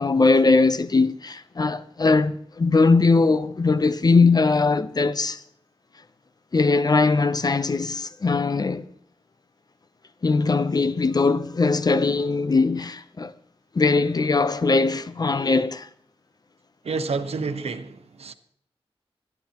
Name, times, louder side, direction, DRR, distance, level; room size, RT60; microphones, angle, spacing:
voice 1, 0.0-5.4 6.5-8.9 10.2-13.3 13.7-15.9, left 3 dB, 40° left, 0.7 m, -20 dB
voice 2, 16.8-18.3, right 4 dB, 85° right, 1.2 m, -29 dB
25.5 x 11.0 x 3.0 m
wide cardioid pair, 110°, 10 cm